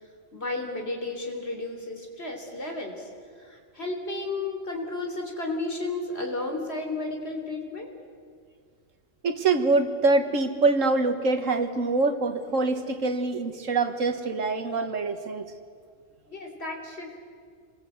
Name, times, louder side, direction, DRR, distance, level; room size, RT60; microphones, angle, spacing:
voice 1, 0.3-3.1 3.4-7.9 16.3-17.2, left 2 dB, 55° left, 3 dB, 3.8 m, -33 dB
voice 2, 9.2-15.5, right 3 dB, 85° right, 8 dB, 1.9 m, -24 dB
27.0 x 22.5 x 8.0 m, 2.1 s
omnidirectional pair, 1.3 m